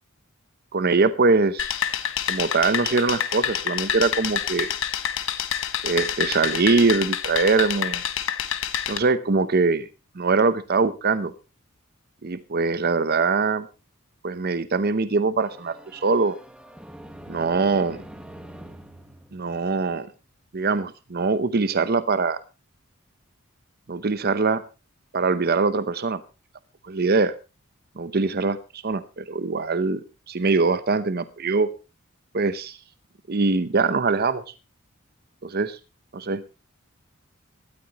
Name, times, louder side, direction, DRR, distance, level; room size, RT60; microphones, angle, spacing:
voice 1, 0.7-1.7 2.3-4.7 5.8-8.0 8.9-9.9 10.2-11.3 12.2-13.7 14.2-16.4 17.3-18.0 19.3-20.1 20.5-22.4 23.9-24.6 25.1-26.2 26.8-27.3 28.0-30.0 30.3-31.7 32.3-32.8 33.3-34.4 35.4-35.8 36.1-36.4, right 4 dB, 45° right, 14 dB, 0.7 m, -22 dB
sound 1, 1.6-9.0, left 9 dB, 65° left, 1.3 m, -27 dB
sound 2, 15.4-20.2, right 1 dB, 5° right, 1.2 m, -44 dB
18.5 x 13.0 x 2.9 m, 0.30 s
head